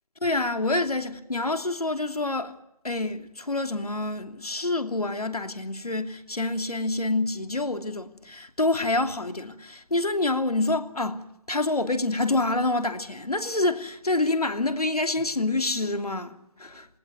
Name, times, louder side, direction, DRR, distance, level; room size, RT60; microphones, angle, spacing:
voice 1, 0.2-2.5 2.8-16.9, left 2 dB, 90° left, 2.8 m, -27 dB
20.0 x 19.0 x 9.4 m
figure-of-eight pair, 155°, 19 cm